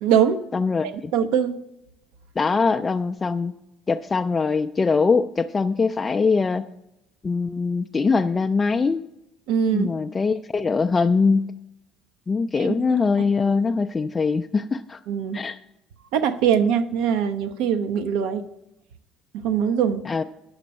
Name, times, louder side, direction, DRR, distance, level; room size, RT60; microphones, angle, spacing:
voice 1, 0.0-0.4 1.1-1.6 9.5-9.9 12.6-13.0 15.1-15.4 16.1-18.5 19.3-20.0, right 8 dB, 60° right, 8 dB, 0.5 m, -22 dB
voice 2, 0.5-1.1 2.4-3.5 3.9-6.7 7.2-9.0 9.7-11.5 12.3-15.0 15.3-15.6 20.1-20.2, left 4 dB, 25° left, 7 dB, 0.3 m, -22 dB
9.4 x 6.7 x 5.1 m, 0.89 s
figure-of-eight pair, 55°, 0 cm